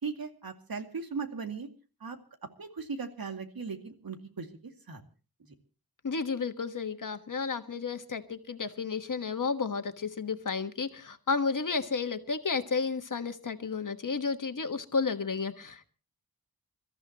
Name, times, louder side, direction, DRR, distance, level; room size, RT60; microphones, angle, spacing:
voice 1, 0.0-1.7 2.0-2.2 2.6-5.0, right 5 dB, 75° right, 5 dB, 2.4 m, -38 dB
voice 2, 6.0-15.9, left 5 dB, 55° left, 8 dB, 1.4 m, -32 dB
28.5 x 14.0 x 2.9 m, 0.36 s
wide cardioid pair, 100°, 36 cm